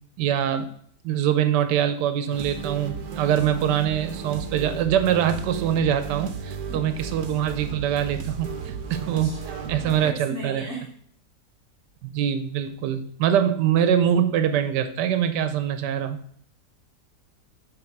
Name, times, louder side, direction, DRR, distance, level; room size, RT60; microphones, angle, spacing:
voice 1, 0.2-0.7 1.0-9.3 9.7-10.7 12.0-16.2, right 9 dB, 85° right, 9 dB, 1.2 m, -24 dB
sound 1, 2.3-10.1, right 6 dB, 70° right, 1.2 m, -34 dB
voice 2, 9.2-10.9, right 2 dB, 50° right, 0 dB, 1.3 m, -38 dB
7.8 x 3.6 x 4.6 m, 0.63 s
omnidirectional pair, 1.8 m